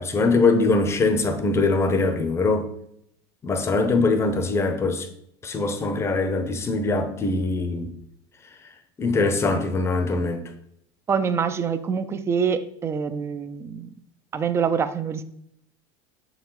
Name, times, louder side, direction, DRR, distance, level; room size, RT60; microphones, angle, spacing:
voice 1, 0.0-2.7 3.4-5.1 5.4-7.9 9.0-10.5, left 3 dB, 20° left, 0.7 m, -22 dB
voice 2, 11.1-13.9 14.3-15.2, right 6 dB, 20° right, 0.4 m, -25 dB
6.3 x 4.8 x 3.9 m
supercardioid pair, 140°, 13 cm